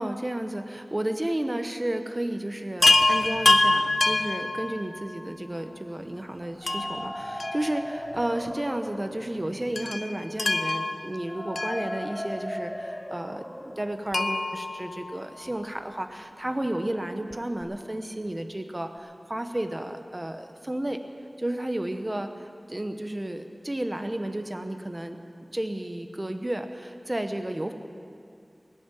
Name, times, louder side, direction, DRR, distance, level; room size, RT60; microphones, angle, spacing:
voice 1, 0.0-21.0 21.4-25.2 25.5-27.7, right 1 dB, 30° right, 7 dB, 0.9 m, -32 dB
Chime, 2.8-5.2 6.7-8.2 8.5-8.6 9.8-12.5 14.1-15.7 17.3-17.4 17.6-17.7, left 2 dB, 65° left, 0.7 m, -26 dB
sound 1, 6.4-16.3, equal, 10° left, 0.6 m, -39 dB
20.0 x 7.3 x 9.0 m, 2.4 s
wide cardioid pair, 60°, 0 cm